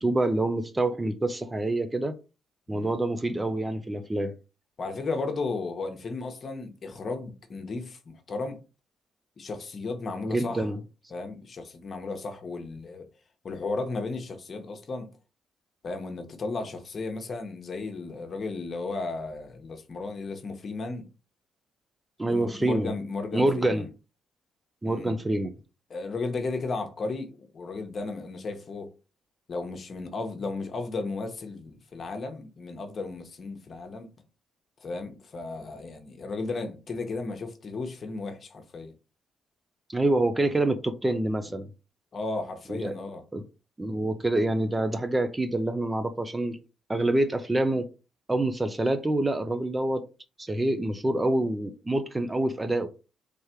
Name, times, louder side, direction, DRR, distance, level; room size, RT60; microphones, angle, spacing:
voice 1, 0.0-2.1 2.7-4.3 10.3-10.8 22.2-22.9 23.3-23.9 24.8-25.5 39.9-41.7 42.7-43.0 43.3-43.4 43.8-46.6 46.9-47.9 48.3-50.0 50.4-52.9, right 1 dB, 15° right, 0.5 m, -26 dB
voice 2, 4.8-8.6 9.4-10.7 11.1-13.0 13.4-15.1 15.8-21.0 22.3-23.8 24.8-25.2 25.9-28.9 29.5-34.1 34.8-38.9 42.1-43.2, left 3 dB, 45° left, 1.0 m, -34 dB
3.4 x 3.2 x 4.3 m
cardioid pair, 90°, 0 cm